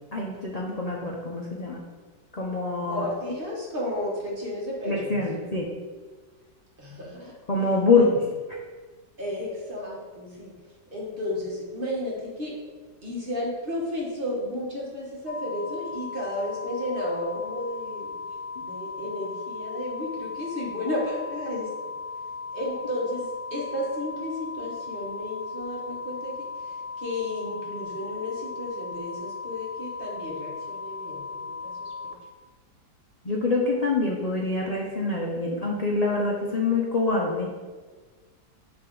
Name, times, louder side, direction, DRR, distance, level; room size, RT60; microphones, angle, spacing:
voice 1, 0.1-1.8 2.3-3.0 4.9-5.7 7.5-8.1 18.6-18.7 33.2-37.5, left 3 dB, 45° left, -2 dB, 0.5 m, -25 dB
voice 2, 2.8-5.2 6.8-7.3 7.9-8.3 9.2-10.5 10.9-12.5 13.0-18.2 18.6-21.7 22.5-32.1, left 1 dB, 30° right, -4 dB, 1.6 m, -33 dB
sound 1, 15.3-32.1, left 4 dB, 85° left, 1.6 m, -37 dB
10.5 x 3.5 x 3.9 m, 1.4 s
omnidirectional pair, 1.9 m